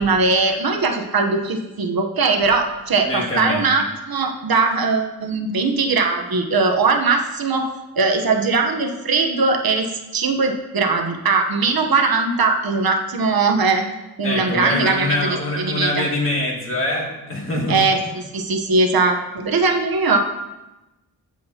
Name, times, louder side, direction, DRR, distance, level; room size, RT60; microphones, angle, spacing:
voice 1, 0.0-13.9 14.2-15.2 15.6-16.0 17.7-20.2, right 4 dB, 65° right, 3 dB, 1.0 m, -20 dB
voice 2, 3.1-3.7 14.2-17.8, left 1 dB, 35° left, -3 dB, 2.1 m, -24 dB
14.5 x 7.6 x 2.9 m, 1.0 s
wide cardioid pair, 175°, 39 cm